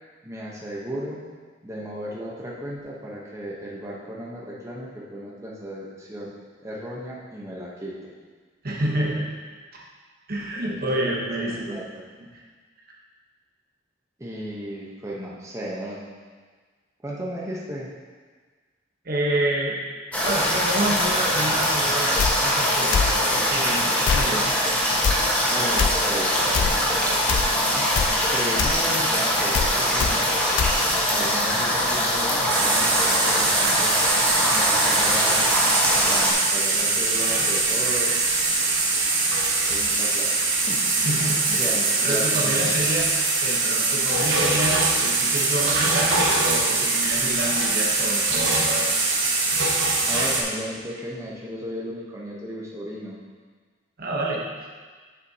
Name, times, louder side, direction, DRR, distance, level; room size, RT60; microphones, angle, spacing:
voice 1, 0.2-1.2 1.6-6.3 6.6-8.1 10.6-12.0 14.2-16.0 17.0-17.9 25.5-26.7 27.8-30.3 31.0-34.0 34.4-35.5 35.9-38.3 39.5-41.1 41.5-42.8 50.1-53.2, equal, 15° right, -5 dB, 0.9 m, -35 dB
voice 2, 8.6-9.3 10.3-11.8 12.3-12.4 19.0-19.8 20.2-24.5 41.0-41.7 42.0-43.1 43.4-48.9 54.0-54.4, right 1 dB, 50° right, -3 dB, 1.1 m, -28 dB
sound 1, 20.1-36.3, equal, 10° left, 1.3 m, -22 dB
sound 2, 22.2-22.3 22.9-23.1 24.1-24.3 25.0-25.2 25.8-25.9 26.5-26.7 27.3-27.5 28.0-28.1 28.6-28.8 29.5-29.7 30.0-30.1 30.6-30.7, left 6 dB, 70° left, 0.3 m, -23 dB
sound 3, 32.5-50.4, right 3 dB, 75° right, 1.2 m, -22 dB
7.8 x 6.9 x 2.8 m, 1.5 s
head